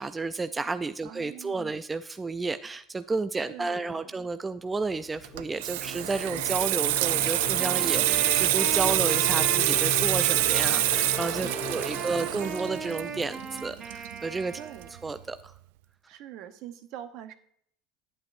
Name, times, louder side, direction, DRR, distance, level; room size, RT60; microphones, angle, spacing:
voice 1, 0.0-14.6 15.0-15.5, right 3 dB, 15° right, 10 dB, 0.4 m, -32 dB
voice 2, 1.0-1.7 3.3-4.3 11.4-12.1 14.6-14.9 16.1-17.3, right 11 dB, 65° right, 9 dB, 1.0 m, -44 dB
sound 1, 4.9-13.7, left 9 dB, 50° left, 0.7 m, -38 dB
Water tap faucet / Sink (filling or washing), 5.2-14.5 14.8-15.1, right 17 dB, 85° right, 0.3 m, -26 dB
Wind instrument woodwind instrument, 7.1-15.3, right 6 dB, 35° right, 1.4 m, -39 dB
9.8 x 8.7 x 2.6 m, 0.66 s
supercardioid pair, 120°, 0 cm